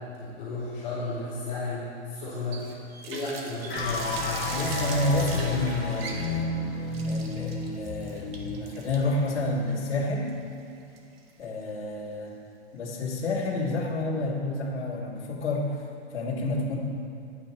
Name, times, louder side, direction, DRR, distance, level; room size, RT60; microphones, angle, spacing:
voice 1, 0.1-2.6 3.0-4.7, left 2 dB, 20° left, -10 dB, 2.7 m, -33 dB
Water tap faucet, 2.5-11.4, right 4 dB, 55° right, 1.3 m, -41 dB
sound 1, 3.7-10.1, left 3 dB, 45° left, 1.7 m, -32 dB
voice 2, 4.5-6.5 7.1-10.3 11.4-12.3 12.7-15.9 16.1-16.8, left 2 dB, 80° left, -7 dB, 2.1 m, -29 dB
11.0 x 8.7 x 4.4 m, 2.5 s
hypercardioid pair, 170°, 35 cm